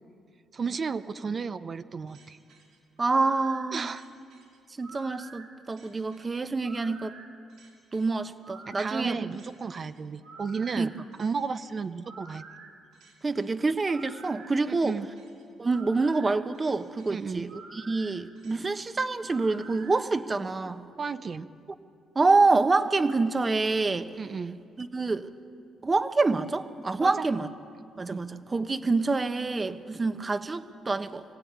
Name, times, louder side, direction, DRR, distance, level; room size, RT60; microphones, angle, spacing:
voice 1, 0.5-2.4 3.7-4.0 8.7-10.9 11.2-12.4 14.7-15.1 17.1-17.5 21.0-21.5 24.2-24.6 27.0-27.3 28.1-28.2, right 5 dB, 40° right, 10 dB, 0.8 m, -33 dB
sound 1, 2.1-19.9, right 3 dB, 80° right, 4.9 m, -50 dB
voice 2, 3.0-3.9 4.8-7.1 7.9-9.3 10.8-10.9 13.2-15.0 15.6-20.8 22.1-24.1 24.8-25.3 25.8-27.5 28.0-31.2, right 3 dB, 25° right, 10 dB, 1.1 m, -27 dB
23.5 x 16.5 x 9.6 m, 2.4 s
cardioid pair, 90°, 0 cm